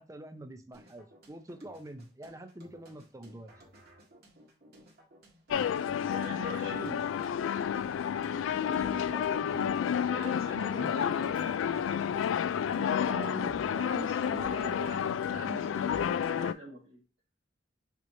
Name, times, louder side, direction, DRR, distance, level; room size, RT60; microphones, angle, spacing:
voice 1, 0.0-3.5 8.5-11.2 12.8-14.0, right 1 dB, 15° right, 7 dB, 0.6 m, -46 dB
sound 1, 0.7-16.7, right 1 dB, 55° right, 1.8 m, -57 dB
sound 2, 5.5-16.5, left 8 dB, 80° left, 0.3 m, -30 dB
voice 2, 6.1-7.0 10.1-11.5 12.7-13.4 13.8-17.0, right 1 dB, 85° right, -7 dB, 2.1 m, -43 dB
6.0 x 3.0 x 2.7 m, 0.34 s
head